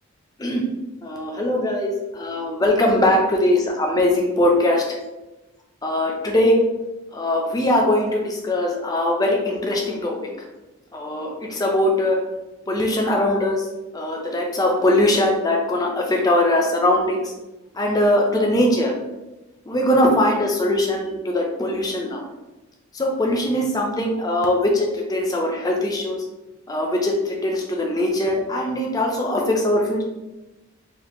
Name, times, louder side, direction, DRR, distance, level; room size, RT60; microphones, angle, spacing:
voice 1, 1.0-4.8 5.8-6.6 7.1-10.1 10.9-12.2 12.7-13.6 13.9-17.3 17.7-18.9 19.7-22.3 22.9-26.2 26.7-30.0, left 1 dB, 15° left, 0 dB, 0.4 m, -21 dB
3.5 x 2.9 x 2.5 m, 1.0 s
head